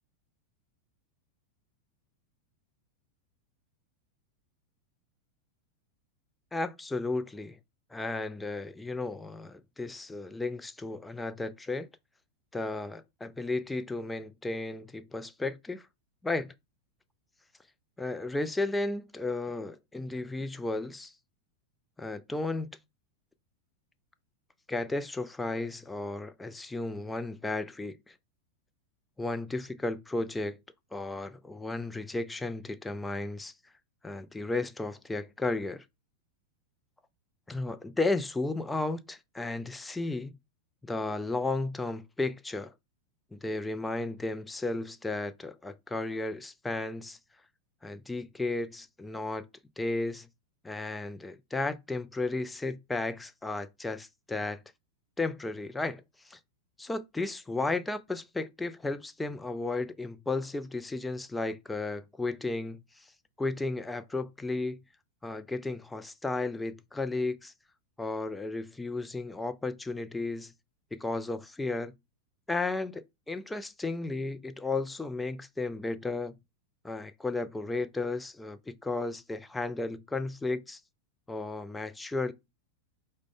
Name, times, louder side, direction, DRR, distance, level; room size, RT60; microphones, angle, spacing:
voice 1, 6.5-7.6 7.9-11.9 12.5-15.8 16.2-16.5 18.0-21.1 22.0-22.7 24.7-28.1 29.2-30.6 30.9-33.5 34.0-35.8 37.5-40.3 40.8-42.7 43.3-47.2 47.8-49.5 49.8-50.3 50.6-54.6 55.2-56.4 56.8-63.0 63.4-64.8 65.2-67.5 68.0-70.5 70.9-71.9 72.5-76.4 76.8-80.8 81.3-82.3, left 2 dB, 10° left, 0.4 m, -34 dB
4.7 x 2.1 x 3.7 m
figure-of-eight pair, 90°, 0 cm